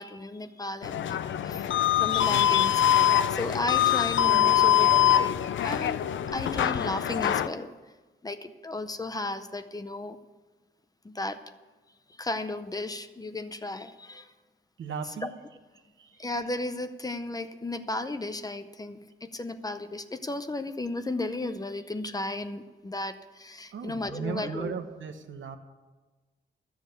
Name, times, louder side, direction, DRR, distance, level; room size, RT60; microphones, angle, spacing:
voice 1, 0.0-7.7 8.2-10.2 11.0-11.4 12.2-14.3 15.2-15.3 16.2-24.7, left 2 dB, 20° left, 10 dB, 0.6 m, -35 dB
sound 1, 0.8-7.5, left 11 dB, 90° left, 0.5 m, -23 dB
voice 2, 14.8-15.3 16.0-16.2 23.7-25.6, right 6 dB, 85° right, 7 dB, 1.1 m, -36 dB
13.0 x 7.1 x 8.1 m, 1.3 s
wide cardioid pair, 140°, 19 cm